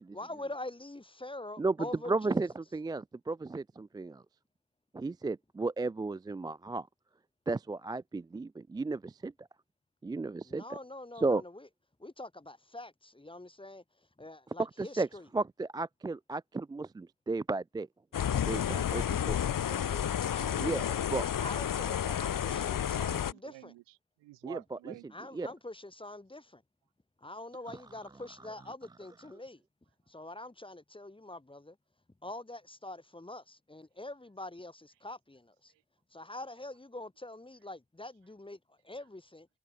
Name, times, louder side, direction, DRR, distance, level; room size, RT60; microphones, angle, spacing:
voice 1, 0.1-2.5 10.4-11.7 12.0-13.8 14.2-15.3 18.3-21.0 21.4-23.7 25.1-26.6 27.2-29.6 30.1-31.8 32.2-35.7 36.1-39.5, left 2 dB, 10° left, 2.1 m, -45 dB
voice 2, 2.1-4.2 4.9-6.9 7.5-9.5 10.0-10.6 11.2-11.4 14.8-15.1 15.3-17.9 18.5-19.4 20.6-20.8 21.1-21.2 24.4-24.6 25.4-25.5, right 3 dB, 10° right, 0.4 m, -33 dB
sound 1, 18.1-23.3, left 9 dB, 45° left, 1.9 m, -31 dB
voice 3, 22.6-25.1 35.7-35.8, right 18 dB, 65° right, 2.9 m, -50 dB
figure-of-eight pair, 40°, 46 cm